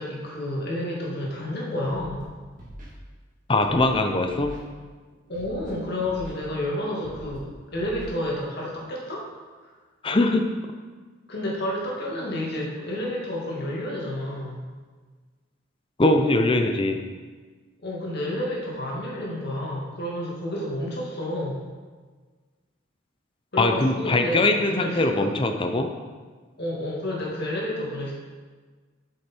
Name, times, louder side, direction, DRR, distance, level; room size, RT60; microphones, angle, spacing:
voice 1, 0.0-2.3 5.3-9.3 11.3-14.6 17.8-21.6 23.5-25.3 26.6-28.1, left 1 dB, 55° left, -4 dB, 2.2 m, -30 dB
Scratching (performance technique), 1.9-2.2 2.6-2.9 3.6-3.9 4.3-4.6 5.3-5.7 6.0-6.4 7.0-7.4 7.7-8.0, equal, 40° right, 2.3 m, -42 dB
voice 2, 3.5-4.6 10.0-10.5 16.0-17.0 23.6-25.9, left 2 dB, 25° left, 5 dB, 0.6 m, -21 dB
7.7 x 6.6 x 4.5 m, 1.4 s
head